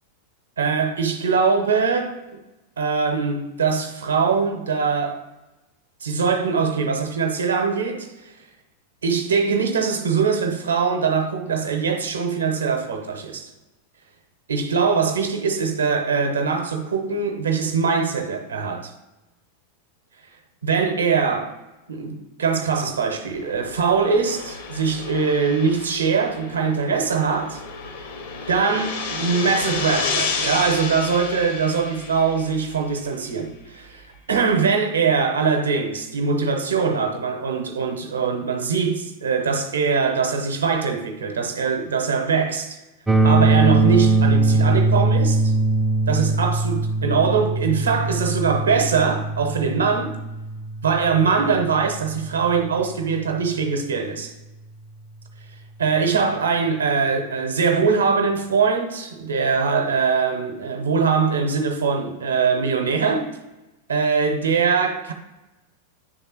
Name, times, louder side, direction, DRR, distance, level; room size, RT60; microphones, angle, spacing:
voice 1, 0.6-2.4 2.8-5.2 6.0-8.3 9.0-13.5 14.5-18.9 20.6-21.5 21.9-27.6 28.5-42.8 43.2-45.5 46.1-50.1 50.8-54.3 55.8-63.3 63.9-65.1, right 5 dB, 70° right, 0.7 m, -22 dB
sound 1, 23.3-32.9, left 5 dB, 60° left, 0.8 m, -31 dB
sound 2, 43.1-53.0, right 3 dB, 10° right, 0.3 m, -21 dB
9.4 x 3.5 x 2.9 m
figure-of-eight pair, 90°, 0 cm